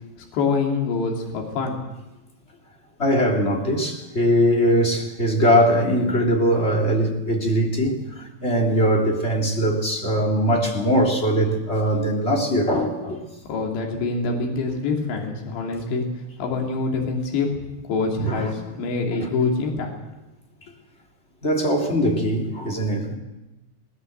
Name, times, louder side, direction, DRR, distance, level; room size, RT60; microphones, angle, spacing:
voice 1, 0.3-1.8 13.5-16.0 16.4-19.9, left 4 dB, 70° left, 5.1 m, -25 dB
voice 2, 3.0-13.2 18.2-18.5 19.2-19.3 21.4-23.1, equal, 15° left, 2.7 m, -21 dB
21.0 x 19.5 x 8.1 m
omnidirectional pair, 5.2 m